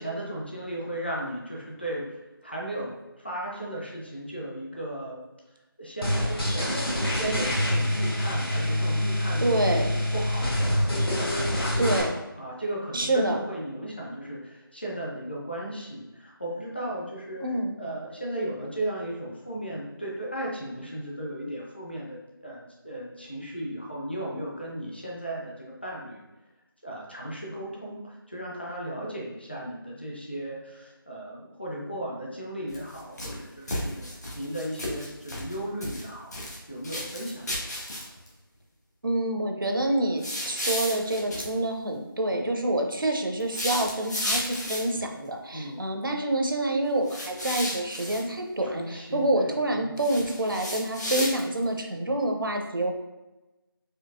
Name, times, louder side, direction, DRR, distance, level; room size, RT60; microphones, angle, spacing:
voice 1, 0.0-5.2 5.8-12.0 12.4-17.4 17.8-26.3 26.8-36.3 36.7-37.5 37.8-37.9 45.5-45.8 48.6-49.9, right 1 dB, 25° left, -3 dB, 0.5 m, -36 dB
sound 1, 6.0-12.0, left 1 dB, 80° left, 1.4 m, -26 dB
voice 2, 9.4-9.9 11.8-12.1 12.9-13.4 17.4-17.7 39.0-52.9, right 1 dB, 65° right, 3 dB, 0.6 m, -27 dB
sound 2, 32.7-33.4 33.7-35.6 35.8-36.6 36.8-38.3 40.2-41.5 43.4-45.0 47.1-48.2 50.0-51.6, left 1 dB, 45° left, 1.0 m, -33 dB
4.4 x 2.7 x 2.5 m, 1.0 s
figure-of-eight pair, 175°, 12 cm